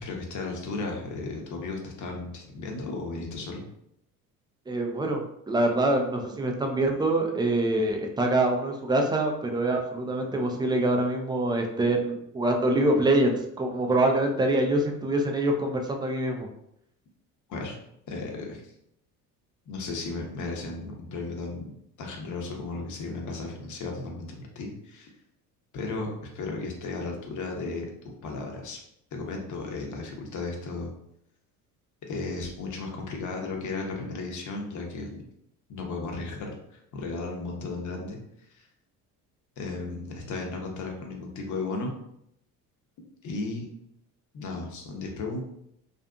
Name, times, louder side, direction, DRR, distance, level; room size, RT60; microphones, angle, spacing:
voice 1, 0.0-3.6 17.5-17.8 18.1-18.7 19.7-25.1 25.7-28.8 29.1-30.9 32.1-35.2 35.7-38.2 38.5-38.7 39.6-41.9 43.2-43.7 44.3-45.4, left 3 dB, 40° left, 1 dB, 0.8 m, -35 dB
voice 2, 4.7-16.5, right 1 dB, 10° right, 2 dB, 0.3 m, -25 dB
2.5 x 2.4 x 2.3 m, 0.75 s
hypercardioid pair, 60°, 45 cm